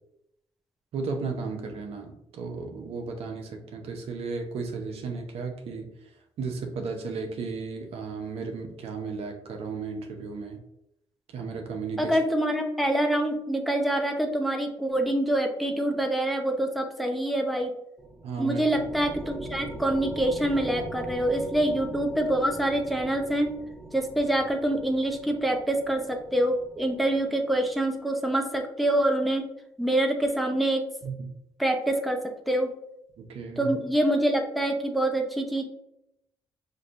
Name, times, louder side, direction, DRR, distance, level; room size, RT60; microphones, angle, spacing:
voice 1, 0.9-10.6 11.3-12.2 18.2-18.6 31.0-31.3 33.2-33.7, right 4 dB, 75° right, 3 dB, 0.7 m, -34 dB
voice 2, 12.0-17.7 18.4-23.5 23.9-29.5 29.8-30.8 31.6-32.7 33.6-35.6, right 1 dB, ahead, 3 dB, 0.7 m, -26 dB
sound 1, 18.0-27.7, right 1 dB, 35° right, 1.4 m, -42 dB
5.2 x 2.6 x 2.5 m, 0.82 s
cardioid pair, 75°, 10 cm